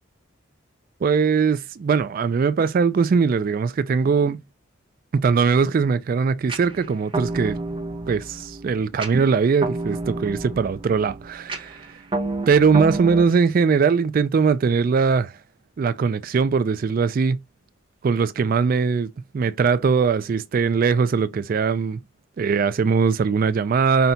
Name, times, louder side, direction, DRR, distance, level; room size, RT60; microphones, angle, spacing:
voice 1, 1.0-4.4 5.2-7.6 8.1-12.0 12.5-15.4 15.8-17.4 18.0-22.0 22.4-24.1, right 5 dB, 45° right, 0.3 m, -20 dB
sound 1, 6.5-13.2, right 2 dB, 25° right, 0.8 m, -30 dB
5.6 x 2.3 x 3.9 m
head